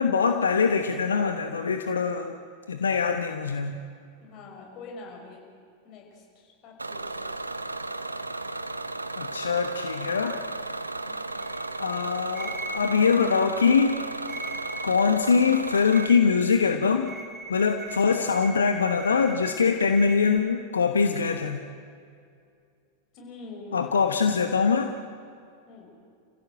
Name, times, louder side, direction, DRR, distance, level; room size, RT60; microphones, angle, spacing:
voice 1, 0.0-2.4 2.7-3.8 9.2-10.4 11.8-14.1 14.8-17.1 17.5-21.6 23.7-24.9, left 5 dB, 70° left, 7 dB, 1.1 m, -23 dB
voice 2, 4.2-5.4 5.8-7.3 11.0-11.3 23.1-24.1 25.7-25.9, left 3 dB, 40° left, 0 dB, 5.8 m, -45 dB
Bus / Engine, 6.8-16.1, right 2 dB, 80° right, 0.8 m, -34 dB
sound 1, 11.4-20.4, right 2 dB, 15° right, 2.2 m, -41 dB
29.5 x 15.5 x 7.7 m, 2.3 s
figure-of-eight pair, 90°, 0 cm